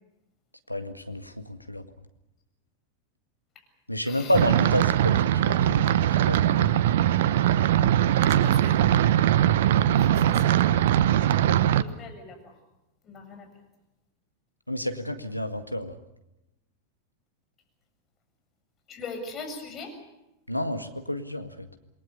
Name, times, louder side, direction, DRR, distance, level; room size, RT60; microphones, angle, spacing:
voice 1, 0.7-1.9 3.9-6.9 14.7-16.0 20.5-21.7, left 1 dB, 90° left, 8 dB, 1.9 m, -30 dB
voice 2, 4.0-4.4 8.2-8.8 10.0-12.6 13.0-13.5 18.9-20.0, left 3 dB, 30° left, 5 dB, 7.2 m, -41 dB
sound 1, 4.3-11.8, right 11 dB, 55° right, 1.0 m, -21 dB
28.0 x 21.5 x 7.1 m, 0.92 s
figure-of-eight pair, 90°, 0 cm